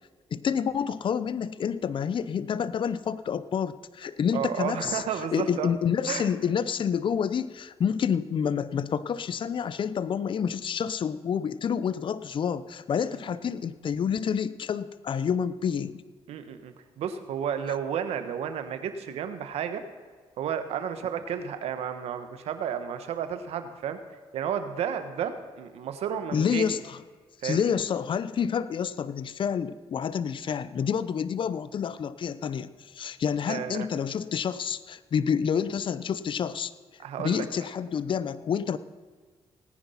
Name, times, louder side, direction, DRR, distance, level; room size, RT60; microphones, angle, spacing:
voice 1, 0.3-16.0 26.3-27.0 27.4-36.7 37.2-38.8, left 7 dB, 55° left, 15 dB, 0.6 m, -28 dB
voice 2, 4.3-5.7 6.1-6.3 16.3-19.8 20.4-24.0 24.3-26.6 27.4-27.6 33.5-33.9 37.0-37.4, right 8 dB, 85° right, 9 dB, 1.2 m, -32 dB
18.5 x 9.8 x 5.7 m, 1.5 s
cardioid pair, 75°, 10 cm